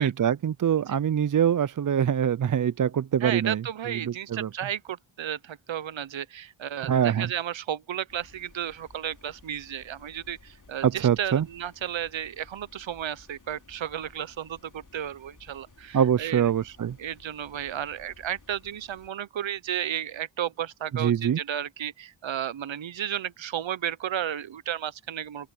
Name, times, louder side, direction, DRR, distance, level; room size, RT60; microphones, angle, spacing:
voice 1, 0.0-3.6 3.9-4.5 6.9-7.3 10.8-11.4 15.9-17.0 21.0-21.4, right 9 dB, 45° right, 0.4 m, -24 dB
voice 2, 3.2-16.5 17.0-25.5, right 10 dB, 70° right, 0.8 m, -33 dB
sound 1, 8.1-19.1, left 3 dB, 40° left, 3.2 m, -56 dB
open air
wide cardioid pair, 55°, 47 cm